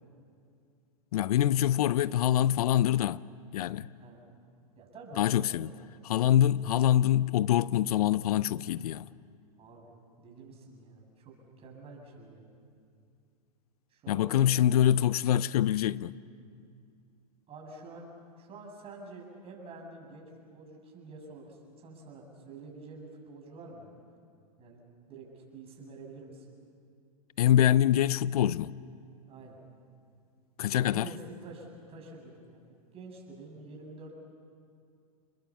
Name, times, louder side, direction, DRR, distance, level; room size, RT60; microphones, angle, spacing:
voice 1, 1.1-3.2 3.5-3.9 5.2-5.7 6.0-9.0 14.1-16.1 27.4-28.7 30.6-31.1, left 11 dB, 75° left, 0.6 m, -25 dB
voice 2, 1.7-2.4 4.0-4.3 4.8-5.6 6.7-6.8 9.6-12.5 13.9-14.4 14.7-15.1 17.5-18.1 18.4-24.0 24.6-24.8 25.1-26.5 29.3-29.6 30.9-34.1, right 3 dB, 30° right, 7.1 m, -48 dB
29.5 x 21.0 x 7.3 m
hypercardioid pair, 120°, 19 cm